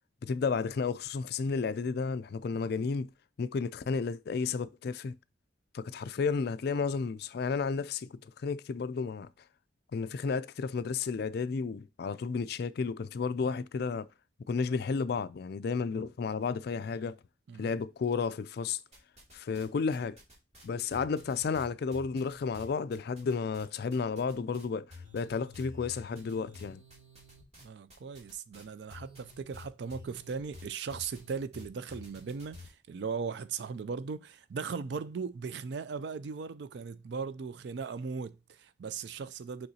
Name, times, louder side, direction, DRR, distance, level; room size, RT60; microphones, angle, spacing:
voice 1, 0.2-3.1 3.4-5.2 5.7-9.3 9.9-14.1 14.5-17.2 17.6-18.8 19.3-20.2 20.6-26.8, left 5 dB, 55° left, 0.3 m, -32 dB
sound 1, 18.9-19.7 19.9-23.6 23.9-24.6 24.9-32.7, left 2 dB, 35° right, 2.5 m, -50 dB
voice 2, 27.6-39.7, right 5 dB, 60° right, 0.4 m, -38 dB
6.7 x 5.4 x 2.8 m
head